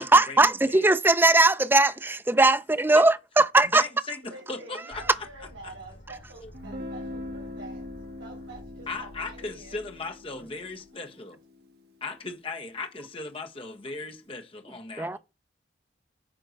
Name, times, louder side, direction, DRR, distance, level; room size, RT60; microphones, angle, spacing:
voice 1, 0.0-3.8 15.0-15.2, right 2 dB, 10° right, 0.4 m, -20 dB
voice 2, 3.7-5.0 5.6-5.7 6.4-6.5 8.9-11.4 12.0-15.2, left 3 dB, 30° left, 1.3 m, -37 dB
voice 3, 4.2-7.9 8.2-9.8, right 2 dB, 80° right, 3.7 m, -47 dB
sound 1, 4.9-10.9, equal, 80° left, 4.1 m, -50 dB
Guitar, 6.5-12.3, left 2 dB, 55° right, 1.4 m, -42 dB
9.2 x 4.4 x 6.4 m
head